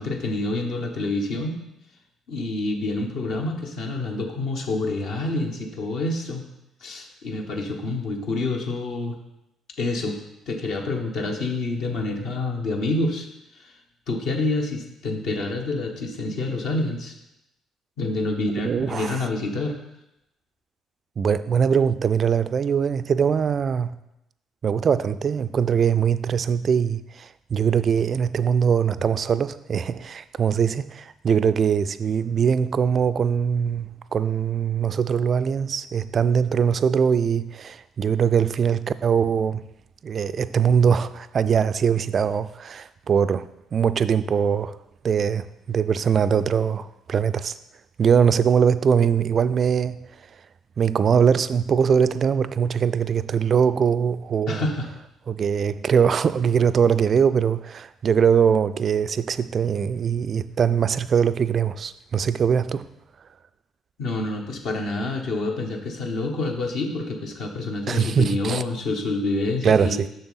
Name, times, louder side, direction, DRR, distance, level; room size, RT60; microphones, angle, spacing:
voice 1, 0.0-1.6 2.3-6.4 6.8-9.2 9.8-10.2 10.5-13.3 13.5-13.8 14.1-17.2 18.0-19.8 54.5-54.9 64.0-70.0, left 2 dB, 55° left, 1.1 m, -27 dB
voice 2, 18.6-19.2 21.2-23.9 24.6-39.6 40.0-43.5 43.7-44.7 45.0-47.6 48.0-50.0 50.8-54.6 55.3-62.9 67.9-68.6 69.6-70.1, right 7 dB, 45° right, 0.3 m, -22 dB
6.8 x 6.6 x 4.0 m
figure-of-eight pair, 45°, 0 cm